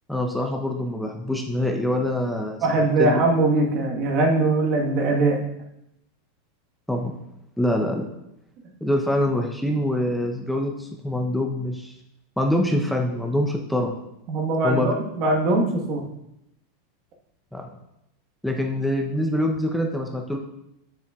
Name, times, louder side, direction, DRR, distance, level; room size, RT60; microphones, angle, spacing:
voice 1, 0.1-2.6 3.0-3.2 6.9-7.2 7.6-8.1 8.8-11.9 12.4-13.9 14.6-14.9 17.5-17.7 18.4-20.4, left 1 dB, ahead, 2 dB, 0.8 m, -24 dB
voice 2, 2.6-5.4 14.3-16.0, right 2 dB, 50° right, 1 dB, 1.4 m, -21 dB
7.5 x 6.9 x 2.4 m, 0.83 s
hypercardioid pair, 100°, 0 cm